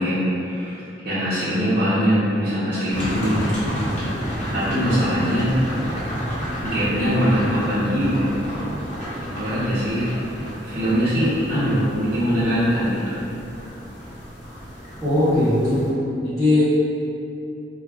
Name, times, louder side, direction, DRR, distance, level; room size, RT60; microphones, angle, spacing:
voice 1, 0.0-3.4 4.5-5.5 5.9-6.0 6.6-8.4 9.4-10.1 10.6-13.2, equal, 55° right, -13 dB, 0.6 m, -22 dB
sound 1, 2.9-15.9, equal, 45° left, 1.0 m, -30 dB
voice 2, 15.0-16.6, left 1 dB, ahead, -18 dB, 0.7 m, -19 dB
2.3 x 2.2 x 3.4 m, 2.7 s
head